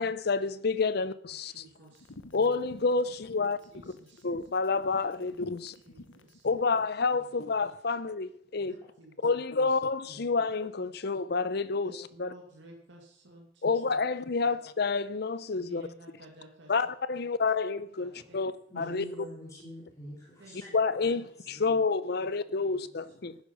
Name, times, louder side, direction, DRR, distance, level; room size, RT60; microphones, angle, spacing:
voice 1, 0.0-1.5 2.3-3.6 4.2-5.7 6.4-8.8 9.2-11.9 12.2-12.3 13.6-15.8 16.7-19.0 20.7-23.3, left 4 dB, 55° left, 0.6 m, -29 dB
voice 2, 1.4-2.1 3.3-4.3 5.2-6.7 7.2-7.5 7.9-8.0 8.7-9.8 11.8-13.8 14.4-14.5 15.5-16.7 17.1-17.2 18.0-18.4 18.8-18.9 20.4-20.6 21.0-21.2 21.5-21.6 22.2-22.3 22.6-23.0, right 1 dB, 70° right, 2.2 m, -54 dB
sound 1, 1.9-6.7, left 2 dB, 90° left, 1.0 m, -51 dB
voice 3, 2.3-2.9 8.6-8.7 10.0-10.4 10.8-10.9 18.4-21.7 22.7-22.8, equal, 15° left, 3.8 m, -47 dB
11.5 x 10.0 x 5.4 m
head